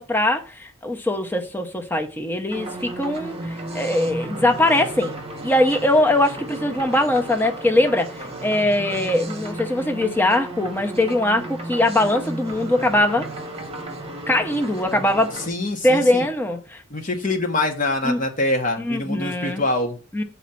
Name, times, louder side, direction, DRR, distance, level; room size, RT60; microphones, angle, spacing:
voice 1, 0.0-5.1 5.4-13.3 14.3-15.3 15.8-16.8 18.0-18.2 18.8-19.6 20.1-20.2, left 1 dB, 10° left, 0.8 m, -21 dB
sound 1, 2.5-15.5, right 2 dB, 30° right, 1.3 m, -34 dB
voice 2, 15.5-16.3 16.9-20.0, left 2 dB, 40° left, 1.4 m, -24 dB
7.2 x 4.2 x 5.8 m
head